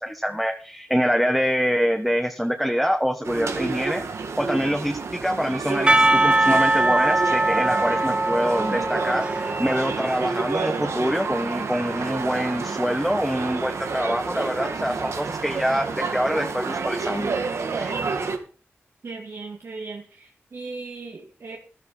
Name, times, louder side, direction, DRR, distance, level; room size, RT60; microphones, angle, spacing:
voice 1, 0.0-4.0 4.4-17.4 17.7-18.0, equal, ahead, 5 dB, 1.3 m, -25 dB
sound 1, 3.2-18.4, right 4 dB, 85° right, 2.0 m, -29 dB
Percussion / Church bell, 5.9-10.9, right 2 dB, 20° right, 0.6 m, -22 dB
voice 2, 19.0-21.6, right 3 dB, 65° right, 0 dB, 2.2 m, -37 dB
13.0 x 12.0 x 4.2 m, 0.38 s
wide cardioid pair, 85°, 5 cm